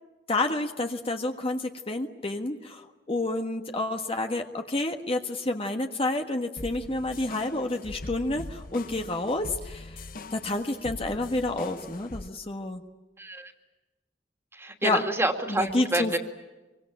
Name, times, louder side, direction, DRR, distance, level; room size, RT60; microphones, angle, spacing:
voice 1, 0.3-10.0 10.3-12.8 14.8-15.0 15.5-16.2, left 2 dB, 35° left, 4 dB, 1.5 m, -29 dB
sound 1, 6.6-12.3, left 2 dB, 55° left, 1.0 m, -42 dB
voice 2, 13.2-13.5 14.5-16.2, right 1 dB, 15° right, 5 dB, 2.6 m, -28 dB
26.0 x 24.5 x 8.8 m, 1.1 s
head